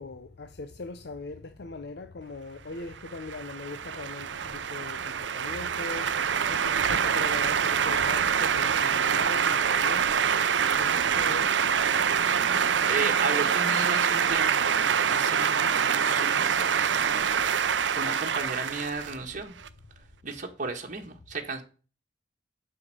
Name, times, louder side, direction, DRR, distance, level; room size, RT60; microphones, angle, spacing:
voice 1, 0.0-10.1 10.7-11.6, left 3 dB, 65° left, 0.7 m, -40 dB
sound 1, 3.0-19.7, right 7 dB, 85° right, 0.6 m, -25 dB
voice 2, 12.4-19.6 20.2-21.6, right 3 dB, 45° right, 1.5 m, -35 dB
7.9 x 5.8 x 7.6 m
head